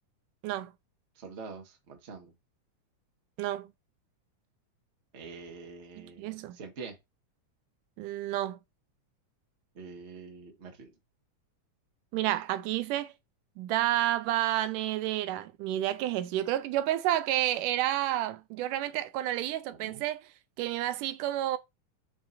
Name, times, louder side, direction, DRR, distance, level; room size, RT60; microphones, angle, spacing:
voice 1, 1.1-2.3 5.1-7.0 9.7-10.9 19.7-20.0, right 4 dB, 35° right, 1.0 m, -45 dB
voice 2, 6.2-6.6 8.0-8.6 12.1-13.1 13.6-20.3 20.6-21.6, right 13 dB, 80° right, 2.1 m, -30 dB
7.1 x 5.9 x 2.6 m
omnidirectional pair, 3.7 m